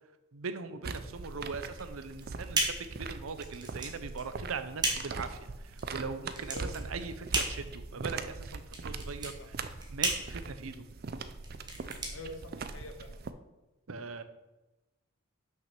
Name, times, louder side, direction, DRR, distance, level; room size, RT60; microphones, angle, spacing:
voice 1, 0.3-5.4 5.7-9.6 9.9-10.9 13.9-14.2, right 4 dB, 80° right, 10 dB, 0.7 m, -40 dB
sound 1, 0.8-13.3, right 4 dB, 45° right, 0.4 m, -41 dB
sound 2, 1.7-13.0, right 2 dB, 20° right, 1.1 m, -36 dB
voice 2, 6.4-6.7 9.4-9.5 11.8-13.1, left 1 dB, 65° left, 5 dB, 1.1 m, -46 dB
6.1 x 5.7 x 5.8 m, 1.1 s
head